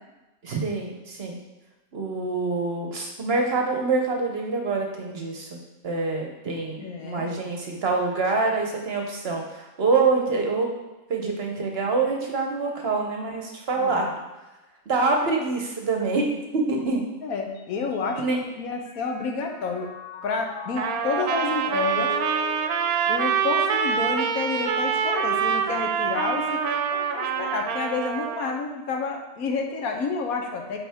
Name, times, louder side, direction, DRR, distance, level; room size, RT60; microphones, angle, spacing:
voice 1, 0.4-1.4 1.9-5.6 5.8-10.7 11.1-14.1 14.9-17.0 18.2-18.4, right 3 dB, 50° right, 2 dB, 0.9 m, -26 dB
voice 2, 6.8-7.3 13.8-14.0 15.2-15.4 17.2-19.9 20.2-22.2 23.1-30.8, left 4 dB, 80° left, 3 dB, 1.3 m, -29 dB
Mallet percussion, 17.6-24.0, left 5 dB, 50° left, 0.7 m, -40 dB
Trumpet, 20.8-28.6, right 7 dB, 90° right, 1.1 m, -25 dB
8.8 x 3.8 x 3.5 m, 1.1 s
omnidirectional pair, 1.5 m